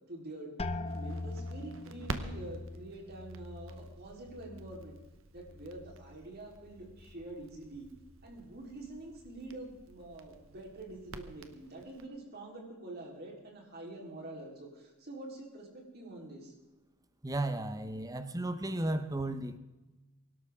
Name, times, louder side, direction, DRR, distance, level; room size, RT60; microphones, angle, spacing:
voice 1, 0.1-5.0 5.3-7.9 8.2-16.5, right 2 dB, 45° right, -1 dB, 3.8 m, -46 dB
sound 1, 0.6-6.2 6.5-7.2 7.8-8.2, left 2 dB, 25° left, 0.7 m, -43 dB
Crackle, 0.9-12.1, right 2 dB, 65° right, 1.2 m, -49 dB
voice 2, 17.2-19.6, right 1 dB, 15° right, 11 dB, 0.8 m, -34 dB
23.5 x 12.5 x 3.6 m, 1.1 s
head